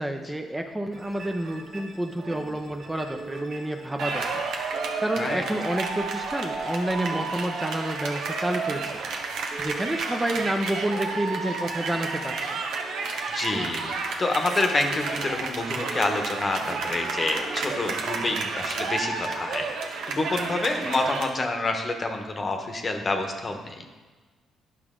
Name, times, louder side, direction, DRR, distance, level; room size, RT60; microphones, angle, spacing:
voice 1, 0.0-4.4 5.0-9.0 9.6-12.6, right 1 dB, 10° right, 4 dB, 0.6 m, -29 dB
sound 1, 0.9-19.8, right 3 dB, 50° right, 1.5 m, -42 dB
sound 2, 4.0-21.3, right 4 dB, 80° right, 1.0 m, -31 dB
voice 2, 13.3-19.7 20.1-23.8, left 2 dB, 35° left, 5 dB, 1.0 m, -28 dB
10.0 x 5.9 x 3.7 m, 1.4 s
cardioid pair, 90°, 0 cm